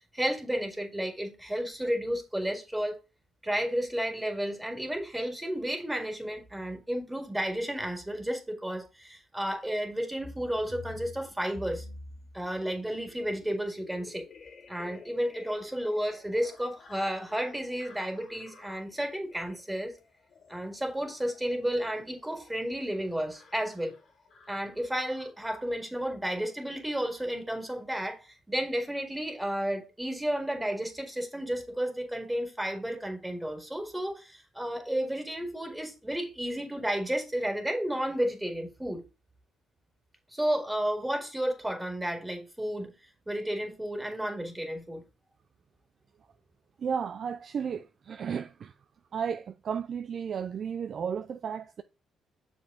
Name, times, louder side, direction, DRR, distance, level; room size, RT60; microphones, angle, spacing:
voice 1, 0.1-3.0 3.4-11.9 12.3-14.3 14.7-19.9 20.5-23.9 24.5-39.0 40.3-42.9 43.3-45.0, equal, 10° right, 1.9 m, -32 dB
sound 1, 10.2-25.6 26.3-26.6 26.9-27.1 27.4-27.5 27.8-28.1, left 3 dB, 55° left, 2.3 m, -51 dB
voice 2, 46.8-48.7 49.1-51.8, right 7 dB, 55° right, 0.3 m, -33 dB
6.5 x 5.1 x 3.8 m
cardioid pair, 80°, 0 cm